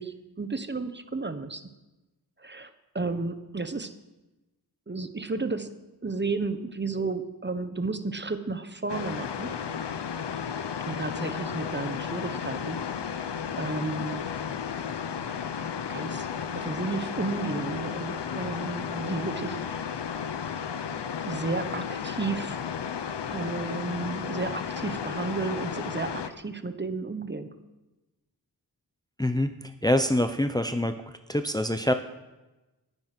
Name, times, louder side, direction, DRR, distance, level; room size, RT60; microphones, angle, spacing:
voice 1, 0.0-1.7 2.4-2.7 2.9-4.0 4.9-9.5 10.9-13.3 13.6-14.3 15.9-16.3 16.5-19.9 21.3-22.6 23.3-27.6, right 3 dB, 25° right, 10 dB, 1.0 m, -33 dB
sound 1, 8.9-26.3, left 7 dB, 85° left, 0.9 m, -33 dB
voice 2, 29.2-31.0 31.3-31.9, left 1 dB, 10° left, 8 dB, 0.7 m, -25 dB
19.0 x 9.4 x 6.0 m, 1.1 s
wide cardioid pair, 110°, 40 cm